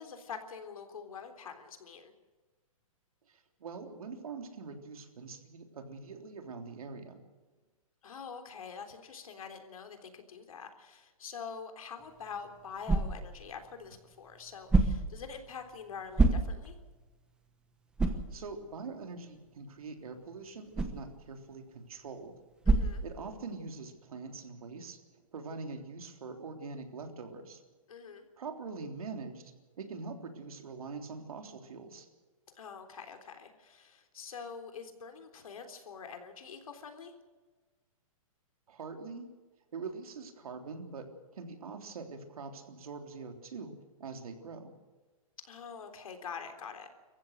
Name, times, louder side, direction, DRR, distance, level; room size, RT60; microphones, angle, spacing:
voice 1, 0.0-2.1 8.0-16.8 22.7-23.0 27.9-28.3 32.5-37.1 45.4-46.9, left 6 dB, 75° left, 6 dB, 3.6 m, -45 dB
voice 2, 3.3-7.2 18.3-22.4 22.8-25.0 25.3-27.6 28.4-32.1 38.7-39.3 39.7-43.7 44.0-44.7, right 4 dB, 75° right, 4 dB, 3.5 m, -43 dB
sound 1, 12.0-23.7, right 3 dB, 5° right, 1.0 m, -33 dB
26.5 x 15.0 x 6.5 m, 1.3 s
hypercardioid pair, 170°, 18 cm